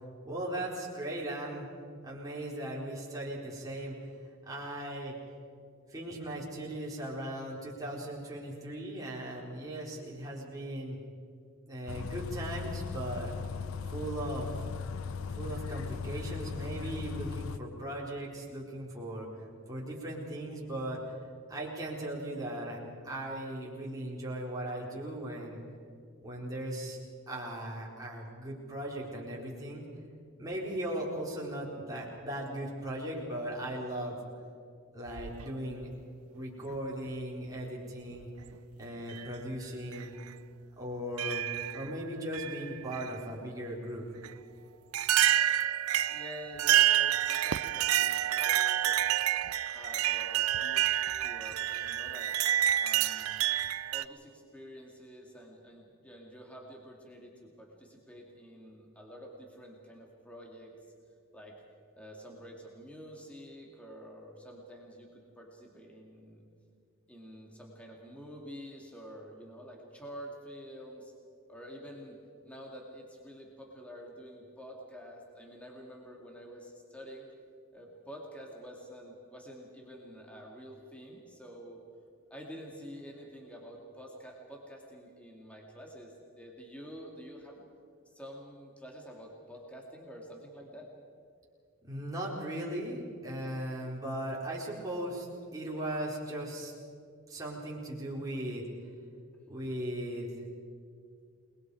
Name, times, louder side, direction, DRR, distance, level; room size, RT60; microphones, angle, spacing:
voice 1, 0.2-1.7 2.0-4.0 4.5-5.1 5.9-11.0 11.7-13.4 13.9-14.6 15.3-19.3 19.7-21.0 21.5-22.8 23.0-25.6 26.2-27.0 27.3-29.8 30.4-34.2 34.9-35.9 36.3-38.3 38.8-40.1 40.8-44.0 91.8-96.7 97.3-98.6 99.5-100.3, right 1 dB, 15° right, -4 dB, 4.1 m, -38 dB
Bus, 11.9-17.6, left 5 dB, 75° left, 0.6 m, -38 dB
sound 1, 35.1-35.9 37.1-37.2 38.2-38.5 39.1-39.3 39.9-40.0 41.2-41.9 42.3-43.1 44.2-44.3 44.9-54.0, right 12 dB, 85° right, 0.5 m, -28 dB
voice 2, 46.1-49.0 49.6-50.9 51.2-52.4 52.8-53.5 53.9-60.7 61.3-61.6 61.9-66.4 67.1-71.1 71.5-77.3 77.7-81.8 82.3-87.6 88.1-90.9, equal, 5° left, -1 dB, 2.5 m, -48 dB
28.5 x 20.5 x 4.9 m, 2.3 s
head